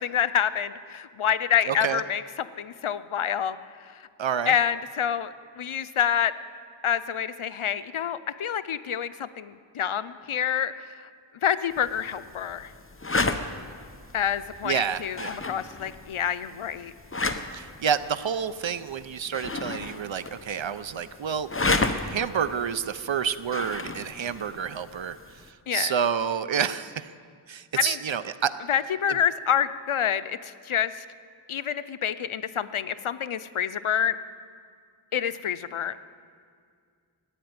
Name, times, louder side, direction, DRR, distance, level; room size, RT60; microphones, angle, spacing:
voice 1, 0.0-3.6 4.5-6.3 6.8-10.9 11.4-12.7 14.1-16.9 25.7-25.9 27.8-28.0 28.7-31.0 31.5-34.2 35.1-36.0, left 9 dB, 90° left, 13 dB, 0.7 m, -27 dB
voice 2, 1.7-2.0 4.2-4.6 14.6-15.3 17.5-25.2 25.7-27.1 27.5-28.5, right 7 dB, 70° right, 14 dB, 0.7 m, -29 dB
sound 1, 11.7-25.5, left 3 dB, 25° left, 1.0 m, -33 dB
15.5 x 8.9 x 9.5 m, 2.2 s
wide cardioid pair, 50°, 48 cm